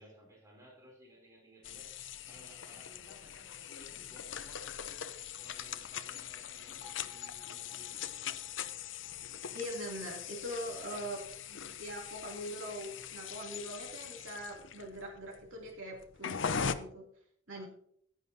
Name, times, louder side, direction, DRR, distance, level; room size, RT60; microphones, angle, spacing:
voice 1, 0.0-1.9 2.3-4.9 5.4-8.4 10.6-11.1 17.5-17.7, equal, 15° right, -1 dB, 3.5 m, -58 dB
sound 1, 1.6-16.7, left 7 dB, 75° left, 0.7 m, -41 dB
Bell, 6.8-10.9, left 5 dB, 45° left, 1.8 m, -60 dB
voice 2, 9.5-11.2 11.5-17.0 17.5-17.6, equal, 85° right, -1 dB, 2.8 m, -42 dB
14.5 x 10.5 x 2.8 m, 0.64 s
head